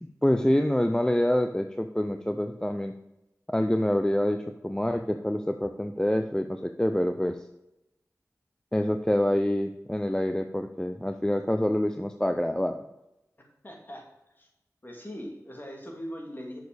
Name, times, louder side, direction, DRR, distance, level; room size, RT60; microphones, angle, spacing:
voice 1, 0.0-2.9 3.5-7.4 8.7-12.8, left 1 dB, 10° left, 7 dB, 0.6 m, -26 dB
voice 2, 13.6-14.0 14.4-14.5 14.8-16.6, equal, 35° left, 0 dB, 2.7 m, -40 dB
6.7 x 6.4 x 6.8 m, 0.93 s
wide cardioid pair, 60°, 6 cm